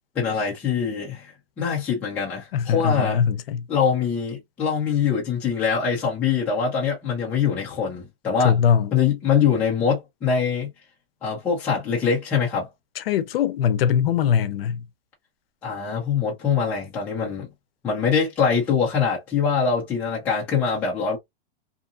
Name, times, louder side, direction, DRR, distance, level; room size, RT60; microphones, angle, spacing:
voice 1, 0.2-3.2 3.7-8.5 8.9-10.7 11.2-12.7 15.6-17.5 17.8-21.2, left 6 dB, 5° left, 0.3 m, -23 dB
voice 2, 2.5-3.6 8.4-8.9 13.0-14.8, left 8 dB, 70° left, 0.6 m, -21 dB
2.7 x 2.5 x 2.4 m
supercardioid pair, 170°, 31 cm